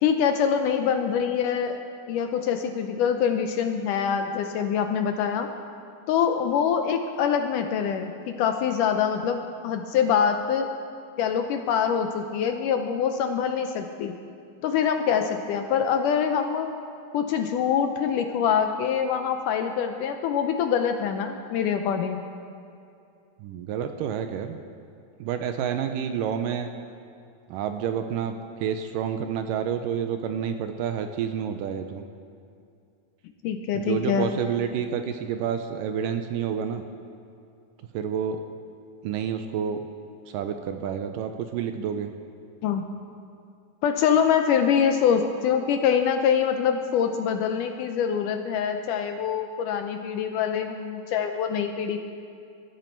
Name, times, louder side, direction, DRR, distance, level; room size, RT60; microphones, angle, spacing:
voice 1, 0.0-1.8 2.1-5.5 6.1-10.7 11.2-14.2 14.6-16.7 17.1-22.2 33.4-34.3 42.6-42.8 43.8-52.0, left 7 dB, 75° left, 6 dB, 2.0 m, -24 dB
voice 2, 23.4-24.6 25.2-26.7 27.5-28.3 28.6-32.0 33.7-36.8 37.9-38.4 39.0-39.8 40.3-42.1, right 8 dB, 80° right, 7 dB, 2.1 m, -29 dB
20.0 x 13.0 x 4.5 m, 2.5 s
omnidirectional pair, 4.2 m